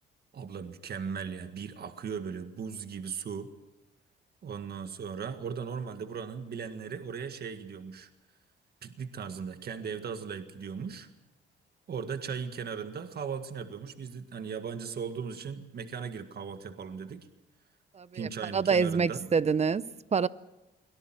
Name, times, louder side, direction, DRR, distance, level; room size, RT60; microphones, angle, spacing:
voice 1, 0.3-3.5 4.4-8.1 8.8-11.1 11.9-17.3 18.1-19.3, right 6 dB, 55° right, 1.8 m, -38 dB
voice 2, 17.9-20.3, right 5 dB, 35° right, 0.8 m, -27 dB
23.5 x 18.0 x 7.6 m
cardioid pair, 90°, 20 cm